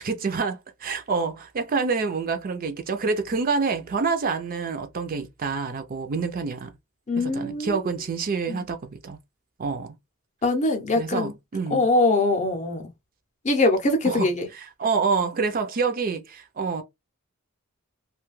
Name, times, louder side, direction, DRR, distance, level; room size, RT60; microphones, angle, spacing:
voice 1, 0.0-6.7 7.2-9.2 9.6-9.9 11.0-11.8 14.1-14.3 14.8-16.8, right 4 dB, 40° right, 0.4 m, -27 dB
voice 2, 7.1-7.9 8.5-8.7 10.4-11.3 11.7-12.9 13.4-14.5, left 2 dB, 30° left, 0.6 m, -23 dB
2.7 x 2.3 x 3.0 m
head